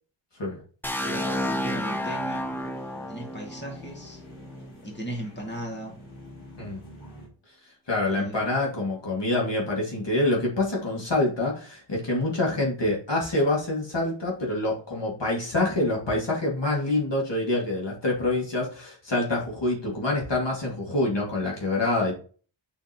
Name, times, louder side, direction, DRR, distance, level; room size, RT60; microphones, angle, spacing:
sound 1, 0.8-4.7, left 1 dB, 5° left, 0.7 m, -31 dB
sound 2, 1.0-7.3, left 1 dB, 85° left, 2.3 m, -45 dB
voice 1, 1.0-2.4 3.1-4.2 4.8-6.0 8.1-8.6, right 1 dB, 20° left, -1 dB, 2.1 m, -37 dB
voice 2, 7.9-22.1, left 2 dB, 65° left, -3 dB, 2.2 m, -26 dB
6.8 x 5.7 x 2.9 m, 0.40 s
wide cardioid pair, 80°, 47 cm